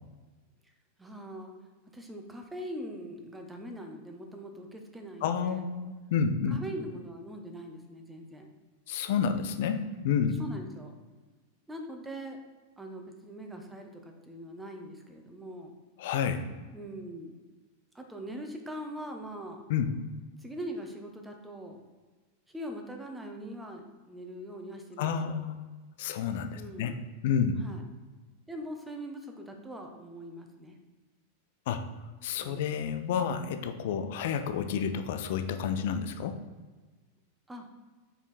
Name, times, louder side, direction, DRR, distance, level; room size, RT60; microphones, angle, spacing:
voice 1, 1.0-1.5 1.9-5.6 6.5-8.5 10.4-10.9 11.7-12.4 12.8-15.7 16.7-17.4 17.9-19.6 20.4-21.8 22.5-25.4 26.5-27.0 27.6-27.8 28.5-30.8 32.4-32.7 37.5-37.7, equal, 10° right, 3 dB, 1.0 m, -42 dB
voice 2, 5.2-6.6 8.9-10.4 16.0-16.4 19.7-19.9 25.0-25.6 26.0-27.0 27.2-27.6 31.7-31.8 32.2-36.4, left 7 dB, 55° left, 8 dB, 0.6 m, -30 dB
5.1 x 5.0 x 4.2 m, 1.3 s
figure-of-eight pair, 90°, 0 cm